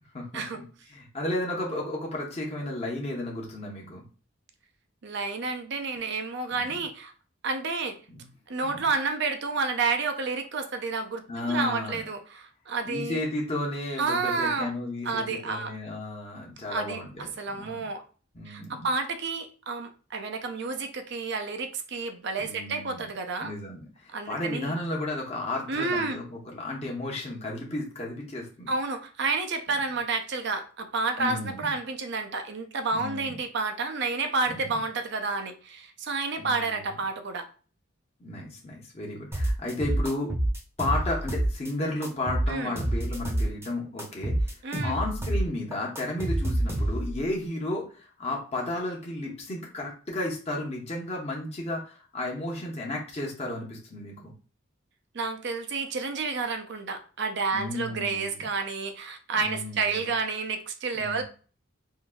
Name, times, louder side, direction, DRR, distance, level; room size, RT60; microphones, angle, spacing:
voice 1, 0.1-4.0 6.5-6.8 8.1-8.3 8.6-8.9 11.3-12.0 12.8-17.9 18.3-18.9 22.4-23.1 23.4-28.7 29.7-29.8 31.2-31.7 32.9-33.4 34.5-34.8 36.4-36.8 38.2-40.3 40.8-44.5 44.8-54.3 57.5-58.5 59.4-60.1 60.9-61.2, left 1 dB, 30° left, -2 dB, 0.8 m, -33 dB
voice 2, 5.0-7.1 7.4-8.0 8.5-13.2 14.0-14.7 15.0-15.7 16.7-18.0 18.5-23.5 24.1-24.8 25.7-26.2 28.7-37.5 42.5-42.7 44.6-45.0 55.1-61.2, right 4 dB, 60° right, 6 dB, 0.5 m, -30 dB
sound 1, 39.3-41.7 42.0-43.7 44.0-47.2, right 1 dB, 15° right, 0.7 m, -27 dB
3.7 x 2.6 x 2.3 m, 0.38 s
head